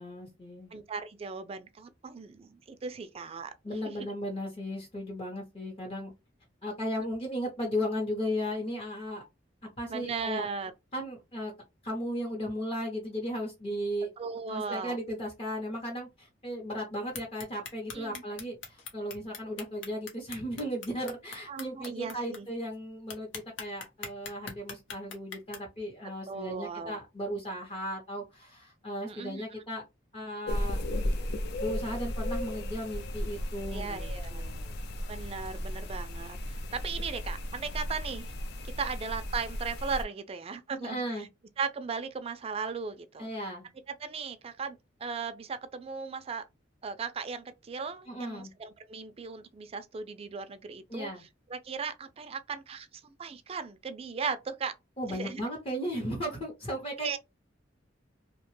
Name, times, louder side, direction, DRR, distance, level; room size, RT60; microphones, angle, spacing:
voice 1, 0.0-0.7 3.6-6.1 6.6-9.2 9.8-10.5 10.9-11.5 11.8-14.1 14.5-29.8 30.1-30.8 31.6-34.8 40.8-41.3 43.2-43.7 48.1-48.5 50.9-51.2 55.0-57.2, equal, 30° left, 0.7 m, -36 dB
voice 2, 0.7-3.5 3.8-4.1 9.9-10.7 14.2-15.0 17.9-18.2 21.5-22.5 26.3-27.0 29.0-29.4 33.7-34.4 35.1-38.3 38.6-41.3 41.6-43.3 44.0-46.4 46.8-51.1 51.5-54.7 55.1-55.4 57.0-57.2, right 5 dB, 30° right, 0.3 m, -37 dB
sound 1, 17.1-22.4 22.7-22.8 23.1-25.6, left 5 dB, 90° left, 0.8 m, -41 dB
sound 2, 30.5-40.0, left 1 dB, 60° left, 0.4 m, -35 dB
2.8 x 2.1 x 3.0 m
head